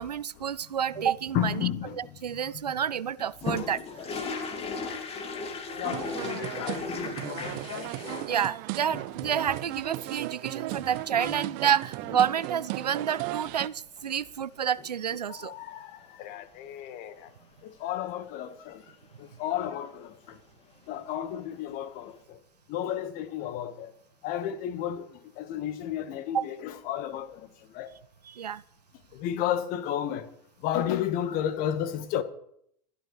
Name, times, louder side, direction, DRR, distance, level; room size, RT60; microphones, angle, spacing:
voice 1, 0.0-1.7 1.9-3.8 8.3-15.5 26.3-26.4 28.2-28.6, right 8 dB, 80° right, 20 dB, 0.5 m, -29 dB
voice 2, 1.3-2.4 4.8-5.0 5.8-7.9 10.7-10.8 11.2-11.3 15.3-17.3 17.6-18.8 19.2-20.4 20.9-22.4 22.7-23.9 24.2-27.5 27.7-27.9 29.1-30.3 30.6-32.2, left 10 dB, 45° left, 12 dB, 1.6 m, -33 dB
sound 1, 3.2-8.3 8.9-9.9 11.9-12.0 12.3-12.4 14.6-14.9 20.8-20.9 21.1-21.2, left 4 dB, 30° left, 2.4 m, -37 dB
sound 2, 5.8-13.7, right 19 dB, 45° right, 0.7 m, -36 dB
26.5 x 12.5 x 3.4 m, 0.70 s
figure-of-eight pair, 80°, 21 cm